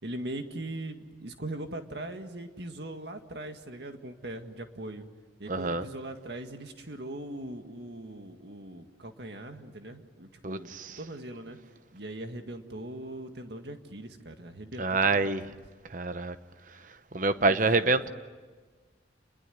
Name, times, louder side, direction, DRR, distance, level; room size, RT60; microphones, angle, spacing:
voice 1, 0.0-5.1 5.4-10.7 11.0-11.6 11.9-15.3 17.4-18.1, right 1 dB, 60° right, 2.0 m, -40 dB
voice 2, 5.5-5.8 10.4-11.0 14.8-15.4 15.9-16.4 17.1-18.1, right 3 dB, 45° right, 0.9 m, -26 dB
29.0 x 22.0 x 9.4 m
head